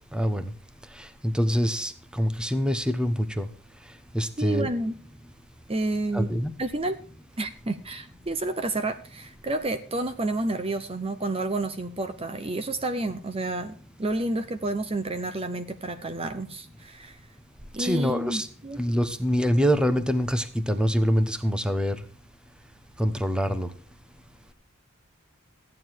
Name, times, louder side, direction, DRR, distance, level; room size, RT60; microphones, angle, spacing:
voice 1, 0.1-0.5 0.8-3.5 3.8-4.7 6.1-6.5 17.8-18.5 18.7-22.1 23.0-23.7, equal, 5° right, 10 dB, 1.0 m, -25 dB
voice 2, 4.4-4.9 5.7-6.3 6.6-7.0 7.4-17.2 17.7-18.8, right 2 dB, 30° right, 10 dB, 0.8 m, -30 dB
14.0 x 9.5 x 4.6 m, 0.41 s
head